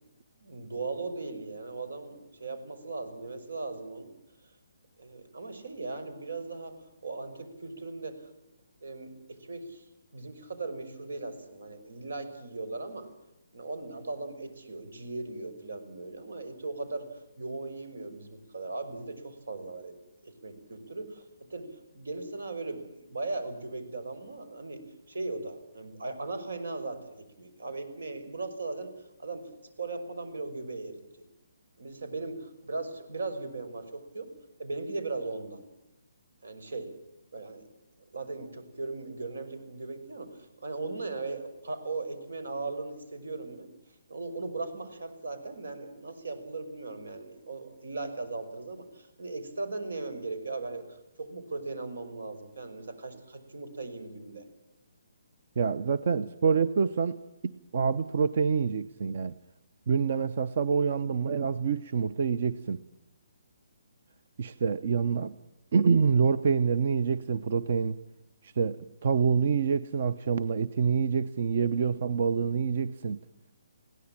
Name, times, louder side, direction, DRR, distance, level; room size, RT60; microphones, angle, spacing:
voice 1, 0.4-4.1 4.4-4.5 5.0-6.8 7.0-8.3 8.8-9.1 9.4-9.9 10.1-13.1 13.5-17.0 17.4-19.9 20.2-21.2 21.5-21.6 21.9-24.8 25.1-28.9 29.2-29.4 29.8-31.0 31.8-34.3 34.6-35.6 36.4-36.9 37.3-37.6 38.0-43.7 44.1-54.4, right 3 dB, 80° right, 10 dB, 5.9 m, -38 dB
voice 2, 55.6-57.2 57.7-59.4 59.9-62.8 64.4-65.3 65.7-68.0 68.4-73.2, right 6 dB, 40° right, 14 dB, 0.7 m, -26 dB
21.5 x 17.0 x 8.8 m, 0.91 s
hypercardioid pair, 175°, 0 cm